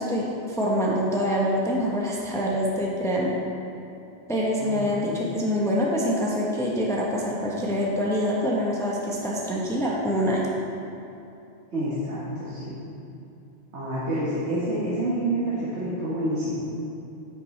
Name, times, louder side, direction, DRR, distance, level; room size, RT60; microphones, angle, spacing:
voice 1, 0.0-3.4 4.3-10.5, equal, 5° left, -4 dB, 0.9 m, -25 dB
voice 2, 4.6-5.3 11.7-12.8 13.7-16.6, right 1 dB, 75° right, -8 dB, 1.7 m, -28 dB
8.9 x 8.5 x 3.2 m, 2.8 s
omnidirectional pair, 1.2 m